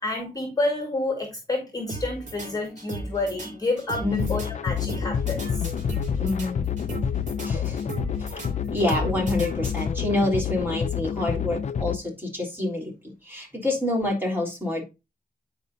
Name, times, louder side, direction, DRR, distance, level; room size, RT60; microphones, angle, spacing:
voice 1, 0.0-5.7, left 2 dB, 25° left, 3 dB, 1.8 m, -29 dB
sound 1, 1.9-10.2, right 2 dB, 50° right, 2.7 m, -37 dB
sound 2, 4.1-12.0, left 8 dB, 50° left, 0.4 m, -28 dB
voice 2, 6.2-6.7 7.4-7.9 8.2-8.4 8.7-14.8, left 1 dB, 15° right, -2 dB, 3.5 m, -27 dB
9.7 x 5.1 x 2.7 m, 0.26 s
wide cardioid pair, 135°, 16 cm